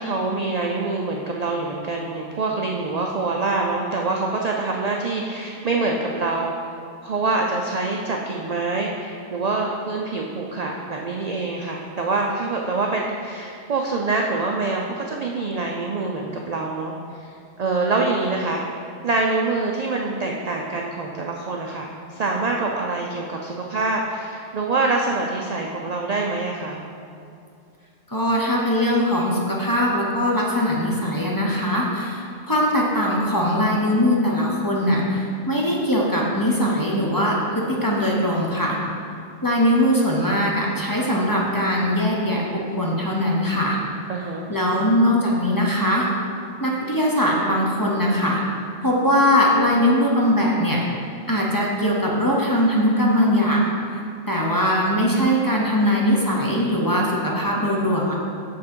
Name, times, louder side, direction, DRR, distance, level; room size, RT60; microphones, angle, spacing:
voice 1, 0.0-6.6 7.0-16.9 17.2-17.3 17.6-18.6 19.0-26.9 44.1-44.5, right 3 dB, 55° right, 0 dB, 0.4 m, -25 dB
voice 2, 28.1-38.8 39.4-43.8 44.5-46.1 46.6-48.4 48.8-50.8 51.3-58.2, equal, 20° left, -3 dB, 0.8 m, -21 dB
6.5 x 6.2 x 4.4 m, 2.5 s
omnidirectional pair, 1.3 m